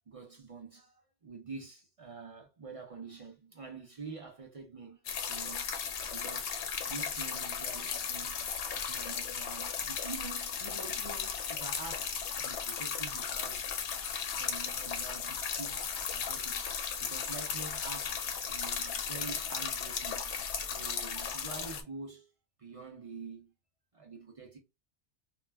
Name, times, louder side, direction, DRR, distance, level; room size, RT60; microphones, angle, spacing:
voice 1, 0.1-5.8 6.1-12.1 12.4-13.7 14.3-16.7 17.0-18.2 18.5-20.3 20.6-22.3 22.6-23.5 23.9-24.6, right 4 dB, 50° right, 0.4 m, -47 dB
sound 1, 5.0-21.8, left 7 dB, 75° left, 0.8 m, -36 dB
2.3 x 2.0 x 3.2 m
omnidirectional pair, 1.2 m